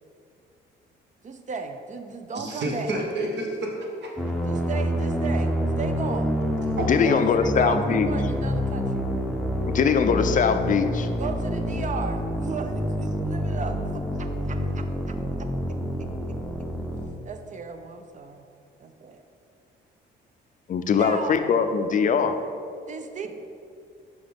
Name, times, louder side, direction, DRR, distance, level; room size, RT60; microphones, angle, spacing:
voice 1, 1.2-2.9 4.4-6.3 6.9-9.1 11.2-15.8 17.3-18.5 18.8-19.2 21.0-21.4 22.9-23.3, right 5 dB, 40° right, 7 dB, 0.5 m, -35 dB
voice 2, 2.3-4.1 6.8-6.9, right 1 dB, 60° right, 0 dB, 1.2 m, -29 dB
sound 1, 4.2-17.1, equal, ahead, 0.6 m, -27 dB
voice 3, 6.9-8.1 9.6-11.1 20.7-22.3, left 6 dB, 40° left, 8 dB, 0.4 m, -22 dB
5.7 x 5.3 x 3.5 m, 2.5 s
cardioid pair, 90°, 20 cm